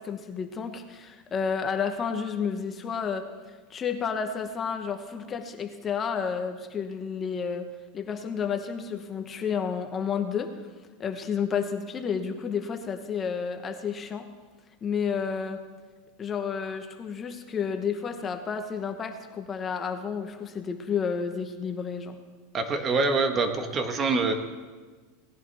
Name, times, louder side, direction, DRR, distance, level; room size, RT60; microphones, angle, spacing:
voice 1, 0.0-3.3 3.7-7.7 7.9-10.5 11.0-14.3 14.8-15.6 16.2-22.2, left 6 dB, 25° left, 6 dB, 1.1 m, -31 dB
voice 2, 22.5-24.3, right 3 dB, 25° right, 6 dB, 1.4 m, -25 dB
18.0 x 10.5 x 3.5 m, 1.4 s
supercardioid pair, 130°, 0 cm